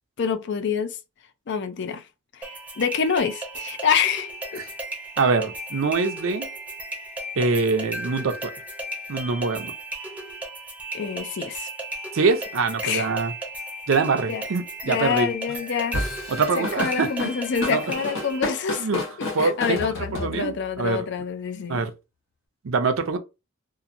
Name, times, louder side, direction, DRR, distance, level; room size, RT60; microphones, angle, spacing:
voice 1, 0.2-1.0 1.5-2.0 2.3-4.6 10.9-11.7 12.8-13.1 14.3-14.4 14.8-16.1 16.6-21.8, left 6 dB, 60° left, 0.4 m, -27 dB
sound 1, 2.4-18.4, right 1 dB, 10° right, 0.6 m, -35 dB
voice 2, 5.2-6.5 7.4-8.5 9.1-9.7 12.1-13.3 13.9-15.3 16.3-17.3 17.7-17.8 18.8-19.0 19.3-21.1 21.7-21.9 22.6-23.2, right 4 dB, 75° right, 0.5 m, -24 dB
Drum kit / Drum, 15.9-20.8, left 2 dB, 80° left, 1.5 m, -31 dB
2.8 x 2.5 x 2.5 m
head